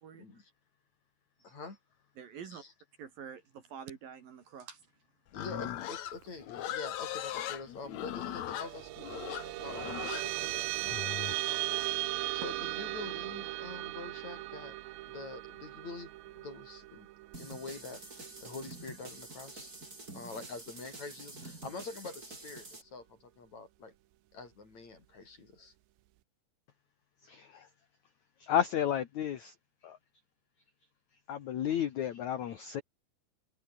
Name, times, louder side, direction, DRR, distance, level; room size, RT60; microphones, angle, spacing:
voice 1, 0.2-0.5 1.4-1.8 2.5-2.7 5.3-10.6 11.1-14.8 15.1-17.1 17.4-19.7 20.1-23.9 24.3-25.7, left 4 dB, 40° left, 6.5 m, -46 dB
voice 2, 2.2-2.6 3.0-4.9 12.3-12.5, right 7 dB, 55° right, 3.7 m, -46 dB
Livestock farm animals working animals, 5.3-11.4, left 12 dB, 80° left, 1.6 m, -39 dB
sound 1, 8.3-19.1, right 16 dB, 80° right, 3.2 m, -38 dB
sound 2, 17.3-22.8, right 2 dB, 20° right, 5.4 m, -48 dB
voice 3, 27.3-27.7 28.4-29.5 29.8-30.0 31.3-32.8, left 10 dB, 60° left, 2.1 m, -32 dB
omnidirectional pair, 5.2 m